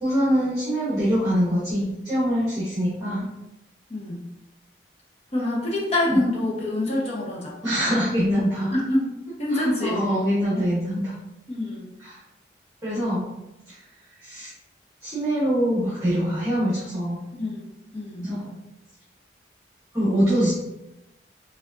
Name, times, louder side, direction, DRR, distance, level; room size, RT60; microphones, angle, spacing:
voice 1, 0.0-3.3 6.1-6.2 7.6-8.7 9.5-11.1 12.0-12.2 12.8-13.3 13.7-13.8 14.2-14.5 15.0-17.2 18.2-18.6 19.9-20.5, equal, 15° right, -10 dB, 1.1 m, -24 dB
voice 2, 3.9-4.3 5.3-7.6 8.7-9.1 9.4-10.0 10.5-10.7 11.5-11.9 17.3-17.6 17.9-18.3, left 1 dB, 35° left, -4 dB, 0.9 m, -26 dB
4.9 x 2.4 x 2.5 m, 0.93 s
head